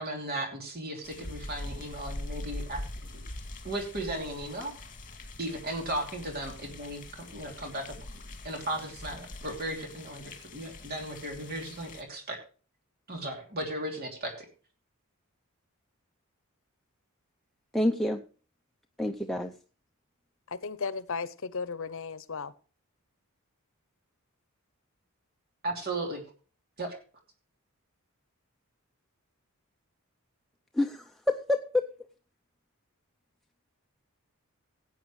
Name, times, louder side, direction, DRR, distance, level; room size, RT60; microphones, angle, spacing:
voice 1, 0.0-2.8 3.6-4.7 5.4-7.9 8.4-12.4 13.1-14.5 25.6-26.2 26.8-27.0, right 1 dB, 45° right, 3.0 m, -36 dB
sound 1, 1.0-12.0, left 1 dB, 40° left, 2.0 m, -43 dB
voice 2, 17.7-18.2 19.0-19.5 30.8-31.0 31.3-31.8, left 1 dB, ahead, 0.6 m, -27 dB
voice 3, 20.5-22.5, left 5 dB, 65° left, 0.8 m, -35 dB
17.5 x 8.8 x 3.2 m
head